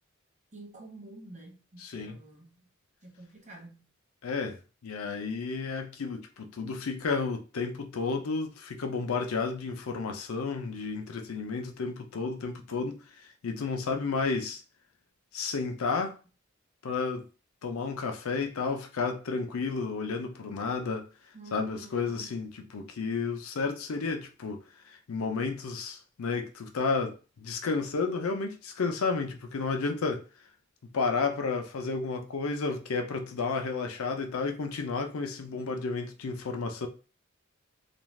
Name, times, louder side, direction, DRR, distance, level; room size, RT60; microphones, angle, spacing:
voice 1, 0.5-2.6 3.0-3.9 21.3-22.4, right 2 dB, 35° right, 0.8 m, -48 dB
voice 2, 1.8-2.2 4.2-13.0 13.4-14.6 15.3-16.2 16.8-17.2 17.6-21.1 21.5-24.6 25.1-30.2 30.9-36.9, left 4 dB, 90° left, 0.5 m, -32 dB
2.5 x 2.3 x 3.1 m
head